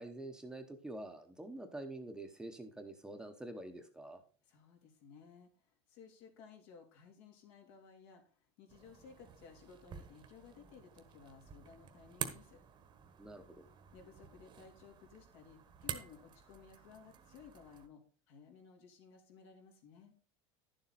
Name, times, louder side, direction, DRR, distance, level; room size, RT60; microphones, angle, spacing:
voice 1, 0.0-4.2 13.2-13.7, right 1 dB, 5° right, 6 dB, 1.0 m, -47 dB
voice 2, 4.4-12.6 13.9-20.1, left 6 dB, 70° left, 3 dB, 3.2 m, -58 dB
sound 1, 8.7-17.9, right 8 dB, 30° right, 1.2 m, -49 dB
11.0 x 7.3 x 4.2 m, 0.39 s
supercardioid pair, 135°, 15 cm